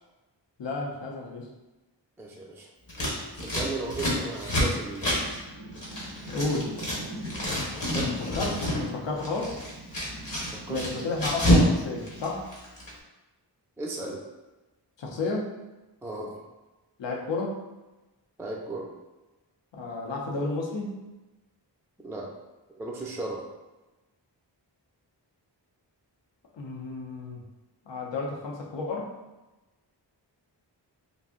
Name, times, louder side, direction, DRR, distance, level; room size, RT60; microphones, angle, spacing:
voice 1, 0.6-1.5 5.9-6.7 8.3-8.5 8.8-9.5 10.7-12.4 15.0-15.5 17.0-17.6 19.7-21.0 26.6-27.4 27.9-29.1, left 3 dB, 75° left, 0 dB, 0.6 m, -32 dB
voice 2, 2.2-2.7 3.3-5.2 7.9-8.1 10.5-10.8 13.8-14.2 16.0-16.4 18.4-18.9 22.0-22.3 22.8-23.4, right 2 dB, 5° right, -1 dB, 0.3 m, -35 dB
Scissors, 2.9-7.0 7.2-8.8 9.1-11.7 12.0-12.9, equal, 45° left, 1.0 m, -27 dB
sound 1, 4.4-7.7 9.4-12.2, right 2 dB, 70° right, 0.5 m, -44 dB
2.5 x 2.0 x 3.6 m, 1.1 s
wide cardioid pair, 80°, 44 cm